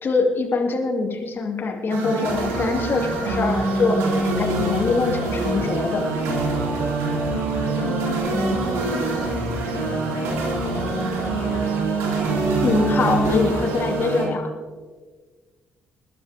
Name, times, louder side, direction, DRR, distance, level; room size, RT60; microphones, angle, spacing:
voice 1, 0.0-4.0 4.4-6.1 12.6-14.5, left 4 dB, 45° left, 2 dB, 2.7 m, -23 dB
sound 1, 1.9-14.3, right 3 dB, 75° right, 3.0 m, -24 dB
voice 2, 7.3-11.8, left 5 dB, 75° left, -1 dB, 1.8 m, -36 dB
21.0 x 11.5 x 3.6 m, 1.4 s
hypercardioid pair, 50°, 5 cm